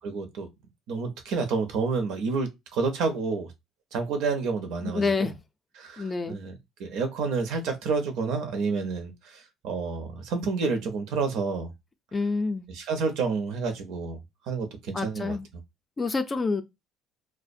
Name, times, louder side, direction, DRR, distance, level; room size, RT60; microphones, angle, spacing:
voice 1, 0.0-0.5 0.9-3.5 3.9-5.3 5.8-11.7 12.7-14.2 14.5-15.4, right 4 dB, 80° right, 0.7 m, -29 dB
voice 2, 4.8-5.3 6.0-6.4 12.1-12.7 14.9-15.5 16.0-16.6, left 4 dB, 20° left, 0.4 m, -27 dB
2.4 x 2.0 x 2.6 m
cardioid pair, 130°, 0 cm